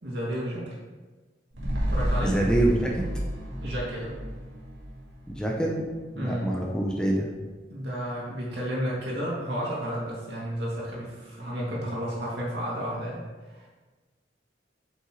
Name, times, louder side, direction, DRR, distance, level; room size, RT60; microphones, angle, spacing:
voice 1, 0.0-0.7 1.9-2.4 3.6-4.2 6.2-6.5 7.7-13.7, equal, 65° right, -5 dB, 2.2 m, -32 dB
sound 1, 1.5-6.0 6.4-6.5, equal, 85° right, 1.8 m, -31 dB
voice 2, 2.2-3.0 5.3-5.9 6.1-7.3, right 1 dB, 5° left, -2 dB, 0.6 m, -25 dB
7.6 x 5.7 x 3.1 m, 1.3 s
head